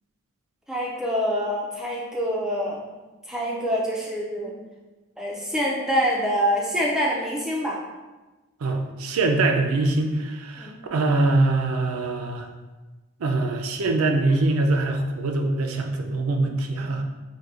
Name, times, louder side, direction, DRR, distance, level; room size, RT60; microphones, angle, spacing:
voice 1, 0.7-2.9 3.3-4.5 5.2-7.8 10.6-10.8 16.8-16.9, equal, 5° right, -4 dB, 0.3 m, -26 dB
voice 2, 8.6-12.5 13.2-17.0, right 2 dB, 80° right, 4 dB, 0.4 m, -23 dB
4.5 x 2.6 x 2.4 m, 1.2 s
head